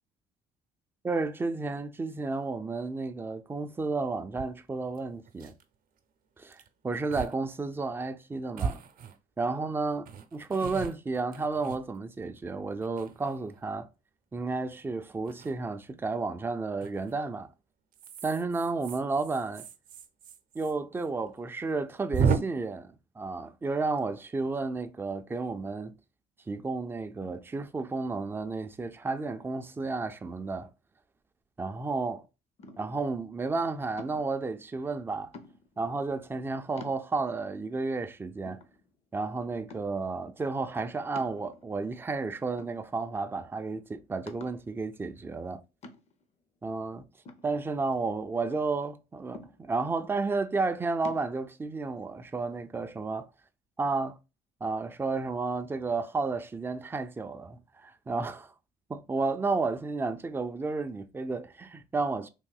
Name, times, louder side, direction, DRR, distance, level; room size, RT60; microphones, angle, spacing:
voice 1, 1.0-5.5 6.4-6.6 6.8-8.8 9.4-13.9 14.3-17.5 18.2-19.7 20.5-25.9 26.5-30.7 31.6-32.2 32.8-35.3 35.8-38.6 39.1-45.6 46.6-47.1 47.4-53.3 53.8-54.2 54.6-58.5 58.9-62.3, right 3 dB, 15° right, 0.3 m, -32 dB
sound 1, 4.4-4.5 4.9-5.0 5.3-5.6 6.5-6.7 7.1-7.3 7.7-7.8 8.6-9.5 10.0-12.3 12.8-13.6 15.2-15.5 16.8-17.1 17.9-20.7 21.0-21.1 21.4-21.5 22.1-22.4, right 6 dB, 60° right, 0.6 m, -34 dB
sound 2, 32.6-33.1 34.0-34.4 35.3-35.8 36.4-36.5 36.8-37.4 38.0-38.1 38.5-39.2 39.7-40.1 41.2-41.9 42.6-43.2 43.6-43.7 44.3-44.7 45.8-46.3 47.3-48.2 49.3-49.9 51.0-51.3, left 3 dB, 40° left, 0.6 m, -48 dB
3.5 x 2.6 x 2.3 m
cardioid pair, 110°, 17 cm